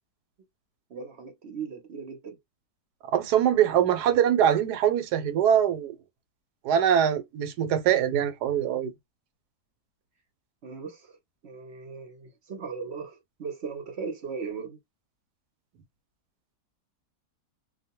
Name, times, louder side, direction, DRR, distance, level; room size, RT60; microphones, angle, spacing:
voice 1, 0.9-2.4 10.6-11.2 11.4-14.8, right 5 dB, 55° right, 0.8 m, -38 dB
voice 2, 3.1-5.9 6.6-8.9, right 9 dB, 90° right, 1.2 m, -23 dB
2.5 x 2.2 x 2.9 m
omnidirectional pair, 1.7 m